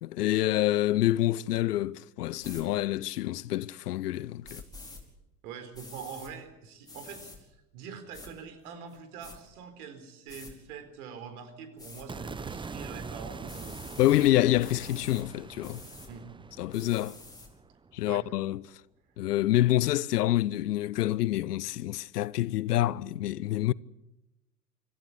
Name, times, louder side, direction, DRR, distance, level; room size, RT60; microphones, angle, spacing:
voice 1, 0.0-4.6 14.0-15.8 16.6-17.2 17.9-18.6 19.2-23.7, left 14 dB, 70° left, 0.7 m, -27 dB
sound 1, 2.4-2.6 4.4-5.0 5.7-6.3 6.9-7.4 8.1-8.3 8.9-9.4 10.3-10.5 11.8-12.1 13.5-14.3 14.6-15.2 15.6-16.1 16.7-17.5, left 3 dB, 10° left, 5.1 m, -47 dB
voice 2, 5.4-13.8 16.1-16.3 18.1-18.2, right 6 dB, 65° right, 4.3 m, -44 dB
sound 2, 12.1-18.3, right 4 dB, 10° right, 0.8 m, -43 dB
25.5 x 14.5 x 9.8 m
figure-of-eight pair, 80°, 48 cm